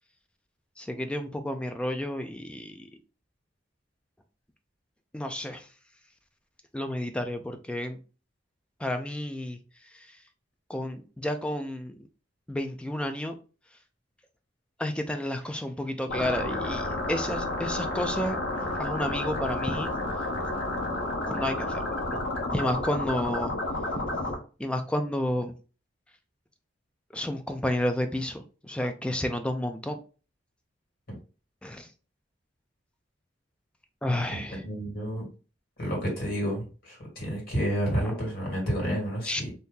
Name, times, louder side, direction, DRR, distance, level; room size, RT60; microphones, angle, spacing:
voice 1, 0.8-2.9 5.1-5.7 6.7-8.0 8.8-9.6 9.8-10.2 10.7-12.0 12.5-13.3 14.8-18.4 18.7-19.9 20.4-20.5 21.3-21.8 22.1-22.2 22.5-24.2 24.6-25.6 27.1-30.0 31.6-31.9 34.0-34.7 38.0-38.2 39.2-39.4, left 1 dB, 5° left, 6 dB, 0.4 m, -31 dB
sound 1, 16.1-24.4, left 2 dB, 75° left, 0.9 m, -31 dB
voice 2, 34.3-35.3 35.8-39.5, equal, 55° left, -2 dB, 1.9 m, -30 dB
2.7 x 2.6 x 3.6 m, 0.35 s
head